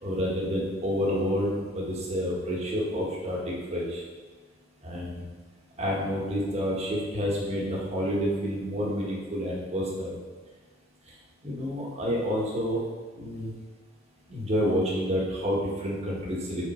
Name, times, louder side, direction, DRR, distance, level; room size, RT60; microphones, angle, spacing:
voice 1, 0.0-4.0 4.8-5.2 5.8-10.2 11.4-12.8 13.2-13.5 14.3-16.7, equal, 30° right, -4 dB, 1.3 m, -29 dB
5.4 x 4.4 x 4.2 m, 1.4 s
head